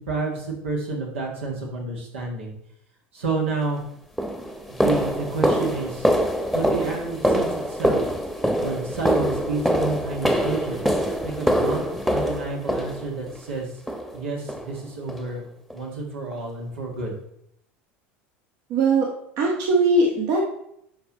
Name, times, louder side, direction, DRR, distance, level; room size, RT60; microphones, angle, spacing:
voice 1, 0.1-2.5 3.1-3.8 4.7-6.1 6.5-8.0 8.6-10.8 11.2-13.7 14.1-15.5 15.7-17.1, right 3 dB, 85° right, -1 dB, 1.9 m, -30 dB
sound 1, 3.5-3.6 4.2-13.4 13.9-14.2 14.5-14.7 15.1-15.3 15.7-15.8 16.3-16.4, equal, ahead, 1.0 m, -24 dB
voice 2, 18.7-19.1 19.4-20.4, right 2 dB, 60° right, 0 dB, 1.3 m, -20 dB
11.0 x 4.5 x 3.1 m, 0.74 s
hypercardioid pair, 80°, 7 cm